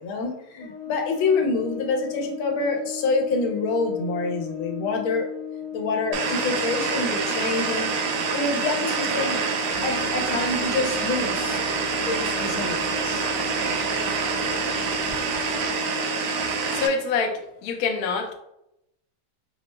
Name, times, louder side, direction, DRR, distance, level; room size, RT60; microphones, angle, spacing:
voice 1, 0.0-5.3 5.7-7.9 8.3-9.4 9.8-11.6 12.0-13.3, left 3 dB, 90° left, 2 dB, 1.5 m, -27 dB
Brass instrument, 0.6-17.0, left 9 dB, 35° left, 0.4 m, -36 dB
sound 1, 6.1-16.9, right 5 dB, 75° right, 1.0 m, -26 dB
sound 2, 9.6-15.8, right 1 dB, 25° right, 0.5 m, -40 dB
voice 2, 16.7-18.3, left 5 dB, 70° left, 3 dB, 0.9 m, -26 dB
4.9 x 2.1 x 3.0 m, 0.81 s
omnidirectional pair, 2.2 m